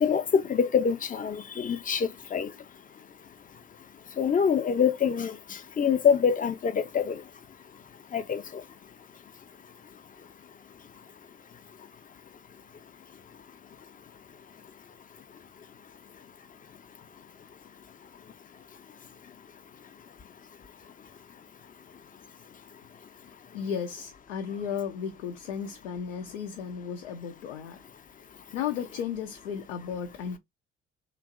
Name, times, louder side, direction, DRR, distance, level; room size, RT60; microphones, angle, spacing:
voice 1, 0.0-2.5 4.2-5.4 5.8-7.2 8.1-8.4, left 7 dB, 25° left, 0.5 m, -25 dB
voice 2, 23.2-27.8 28.5-30.4, left 7 dB, 80° left, 0.5 m, -34 dB
2.9 x 2.5 x 2.4 m
figure-of-eight pair, 50°, 34 cm